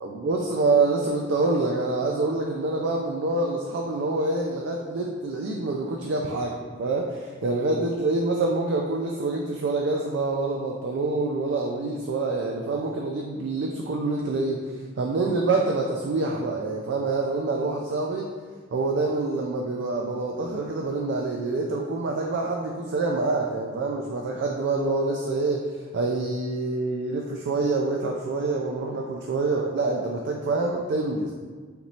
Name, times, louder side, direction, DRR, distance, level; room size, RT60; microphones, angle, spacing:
voice 1, 0.0-18.3 18.7-25.7 25.9-31.3, right 3 dB, 65° right, 0 dB, 0.3 m, -26 dB
4.3 x 3.0 x 2.7 m, 1.5 s
head